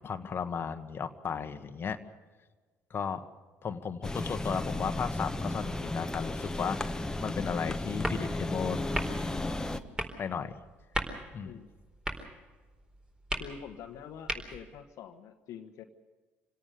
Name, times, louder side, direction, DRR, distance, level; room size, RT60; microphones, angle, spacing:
voice 1, 0.0-2.0 2.9-3.2 3.6-8.9 9.3-9.6 10.2-10.5 11.3-11.5, left 6 dB, 40° left, 7 dB, 1.4 m, -35 dB
sound 1, 4.0-9.8, left 2 dB, 10° left, 1.4 m, -34 dB
sound 2, 7.9-14.8, equal, 15° right, 4.3 m, -39 dB
voice 2, 13.4-15.8, left 8 dB, 60° left, 7 dB, 1.3 m, -46 dB
26.5 x 17.5 x 6.8 m, 1.4 s
hypercardioid pair, 55°, 6 cm